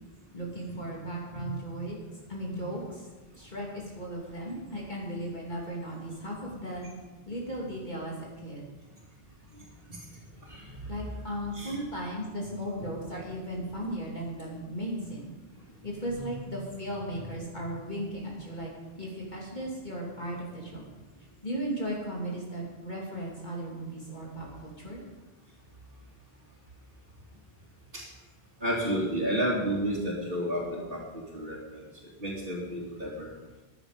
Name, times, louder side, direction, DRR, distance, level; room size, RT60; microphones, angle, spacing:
voice 1, 0.3-2.0 2.3-3.1 3.3-6.8 7.3-8.6 10.9-15.3 15.8-18.7 19.0-20.9 21.4-25.0, right 1 dB, 45° left, -3 dB, 3.0 m, -36 dB
voice 2, 28.6-31.8 32.2-33.3, equal, 55° right, -9 dB, 3.1 m, -32 dB
15.0 x 10.5 x 5.2 m, 1.2 s
omnidirectional pair, 1.1 m